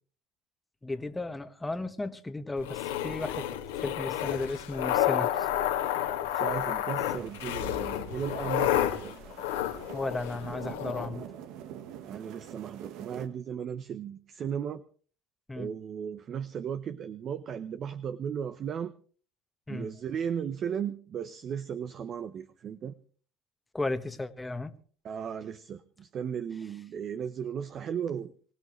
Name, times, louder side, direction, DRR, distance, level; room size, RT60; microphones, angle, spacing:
voice 1, 0.8-3.5 3.8-5.5 9.9-11.3 15.5-15.7 19.7-19.9 23.7-24.7, left 2 dB, 10° left, 9 dB, 1.4 m, -34 dB
sound 1, 2.6-11.1, left 11 dB, 90° left, 2.0 m, -30 dB
voice 2, 6.3-9.3 12.0-14.8 15.6-19.0 19.7-22.9 25.0-28.3, right 8 dB, 45° right, 12 dB, 0.8 m, -36 dB
sound 2, 7.0-13.3, right 10 dB, 70° right, 1.3 m, -46 dB
24.5 x 16.5 x 3.2 m, 0.43 s
supercardioid pair, 85°, 0 cm